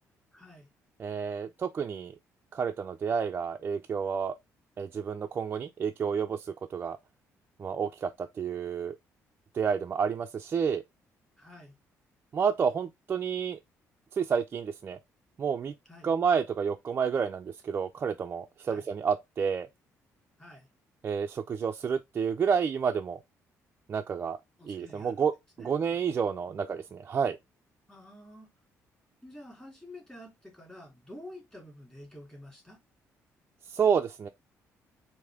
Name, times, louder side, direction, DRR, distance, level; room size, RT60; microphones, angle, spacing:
voice 1, 0.3-0.7 11.4-11.7 15.9-16.1 18.7-18.9 20.4-20.7 24.6-25.2 25.6-25.7 27.9-28.5 29.2-32.8, left 1 dB, 10° left, 2.6 m, -49 dB
voice 2, 1.0-2.1 2.5-4.3 4.8-7.0 7.6-9.0 9.5-10.8 12.3-13.6 14.1-15.0 15.4-15.7 16.0-19.7 21.0-23.2 23.9-24.4 24.7-25.3 25.6-27.4 33.7-34.3, right 6 dB, 35° right, 0.3 m, -30 dB
4.8 x 2.6 x 3.5 m
cardioid pair, 120°, 6 cm